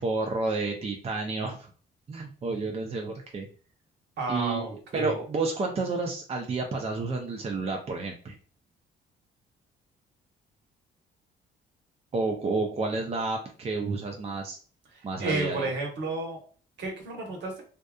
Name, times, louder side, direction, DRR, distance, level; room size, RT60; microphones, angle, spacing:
voice 1, 0.0-1.7 2.1-3.5 4.3-8.4 12.1-14.6 15.0-15.7, right 3 dB, 30° right, 2 dB, 0.5 m, -30 dB
voice 2, 4.2-5.1 14.9-16.4 16.8-17.6, right 2 dB, 65° right, 0 dB, 1.0 m, -31 dB
2.5 x 2.4 x 2.3 m, 0.41 s
cardioid pair, 90°, 20 cm